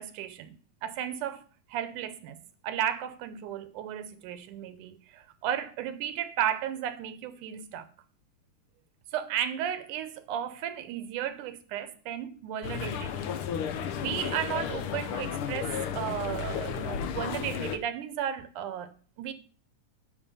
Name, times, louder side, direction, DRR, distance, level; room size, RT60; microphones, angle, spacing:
voice 1, 0.0-1.4 1.7-7.9 9.1-13.3 14.0-18.9 19.2-19.3, right 10 dB, 80° right, 2.2 m, -34 dB
sound 1, 12.6-17.8, left 8 dB, 85° left, 1.2 m, -33 dB
11.0 x 5.8 x 5.3 m
omnidirectional pair, 3.7 m